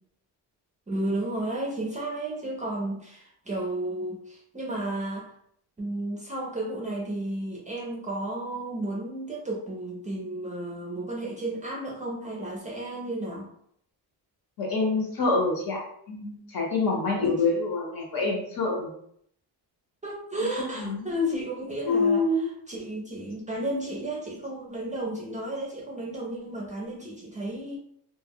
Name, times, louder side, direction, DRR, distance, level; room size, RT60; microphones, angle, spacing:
voice 1, 0.9-5.3 5.8-13.5 17.2-17.3 20.0-27.8, right 1 dB, 20° right, -3 dB, 0.4 m, -33 dB
voice 2, 14.6-15.8 16.1-18.9 20.4-21.1 21.8-22.5, left 3 dB, 55° left, 0 dB, 0.9 m, -26 dB
2.2 x 2.0 x 3.5 m, 0.69 s
cardioid pair, 130°, 42 cm